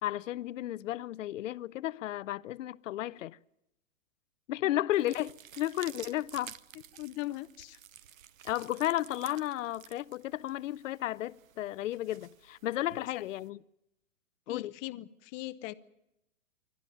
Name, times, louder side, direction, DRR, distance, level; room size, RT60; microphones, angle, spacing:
voice 1, 0.0-3.4 4.5-6.6 8.4-13.6 14.5-14.7, left 14 dB, 65° left, 0.7 m, -33 dB
sound 1, 4.9-13.5, right 10 dB, 75° right, 0.9 m, -52 dB
voice 2, 6.9-7.8 13.1-13.2 14.5-15.7, left 18 dB, 30° left, 0.7 m, -40 dB
27.5 x 12.5 x 9.1 m
hypercardioid pair, 140°, 40 cm